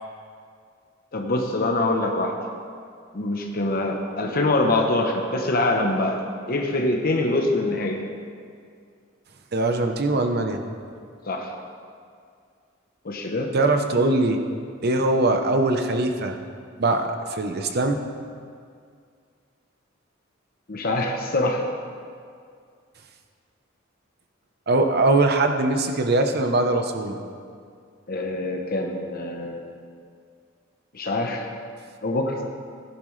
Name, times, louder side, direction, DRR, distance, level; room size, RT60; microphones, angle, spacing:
voice 1, 1.1-2.4 3.1-6.2 6.5-8.0 11.3-11.5 13.0-13.5 20.7-21.6 28.1-29.7 30.9-31.5 32.0-32.4, left 2 dB, 50° left, 2 dB, 0.9 m, -24 dB
voice 2, 9.5-10.6 13.5-14.4 14.8-16.4 16.8-18.0 24.7-27.2, right 2 dB, 55° right, 5 dB, 0.9 m, -21 dB
16.0 x 10.5 x 3.3 m, 2.2 s
head